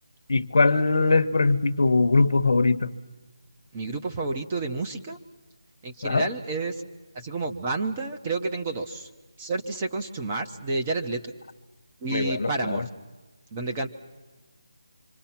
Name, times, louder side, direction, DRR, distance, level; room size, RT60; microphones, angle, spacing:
voice 1, 0.3-2.9 6.0-6.3 12.1-12.9, left 3 dB, 60° left, 12 dB, 1.0 m, -21 dB
voice 2, 3.7-5.2 5.8-6.7 7.1-9.1 9.4-11.2 12.0-12.9 13.5-13.9, right 3 dB, 15° right, 4 dB, 0.9 m, -30 dB
26.0 x 25.5 x 5.9 m, 1.3 s
figure-of-eight pair, 175°, 3 cm